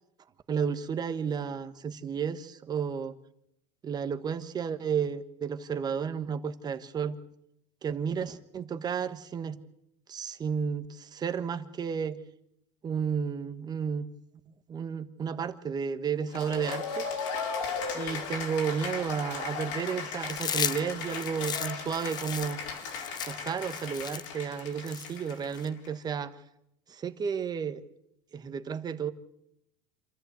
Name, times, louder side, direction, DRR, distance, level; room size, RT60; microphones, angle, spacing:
voice 1, 0.5-3.2 3.8-7.2 7.8-9.6 10.1-12.2 12.8-14.1 14.7-17.0 17.9-22.6 23.3-26.4 26.9-27.8 28.3-29.1, right 7 dB, 25° right, 10 dB, 1.3 m, -32 dB
Cheering / Applause, 16.3-25.9, left 5 dB, 85° left, 5.1 m, -36 dB
Chewing mastication, 20.2-25.7, left 8 dB, 25° left, 0.8 m, -36 dB
27.0 x 14.0 x 8.2 m, 0.80 s
supercardioid pair, 130°, 15 cm